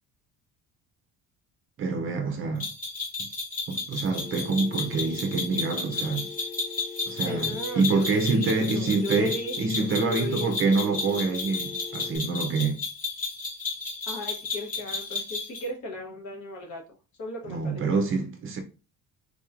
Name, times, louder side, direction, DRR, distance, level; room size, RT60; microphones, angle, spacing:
voice 1, 1.8-2.7 3.2-3.3 3.7-6.3 7.1-12.8 17.5-18.6, right 4 dB, 35° right, 0.5 m, -26 dB
sound 1, 2.6-15.7, left 4 dB, 25° left, 0.9 m, -33 dB
Telephone, 4.2-12.2, left 6 dB, 90° left, 0.9 m, -42 dB
voice 2, 7.2-10.5 14.1-16.8 17.2-18.1, left 2 dB, 55° left, 1.1 m, -36 dB
3.9 x 2.9 x 2.4 m
cardioid pair, 180°, 35 cm